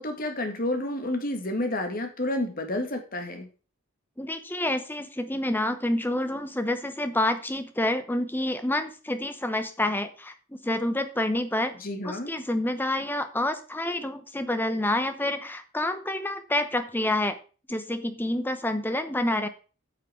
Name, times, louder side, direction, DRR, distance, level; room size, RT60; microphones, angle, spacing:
voice 1, 0.0-3.5 11.8-12.3, left 1 dB, 40° left, 5 dB, 2.0 m, -30 dB
voice 2, 4.2-10.3 10.6-11.7 12.0-17.4 17.7-19.5, left 1 dB, 10° left, 9 dB, 0.9 m, -28 dB
8.7 x 6.5 x 5.7 m, 0.35 s
head